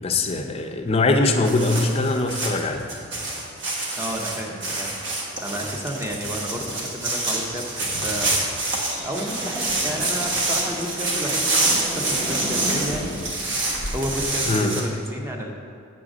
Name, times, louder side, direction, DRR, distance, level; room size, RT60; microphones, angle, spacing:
voice 1, 0.0-2.8 14.5-14.8, left 2 dB, 30° left, 4 dB, 0.5 m, -22 dB
sound 1, 1.4-14.8, right 2 dB, 60° right, 1.2 m, -27 dB
voice 2, 4.0-4.9 5.4-8.3 9.0-13.1 13.9-15.5, equal, 10° right, 1 dB, 0.6 m, -31 dB
sound 2, 9.0-14.2, equal, 40° right, 1.0 m, -33 dB
7.7 x 3.8 x 6.1 m, 2.5 s
head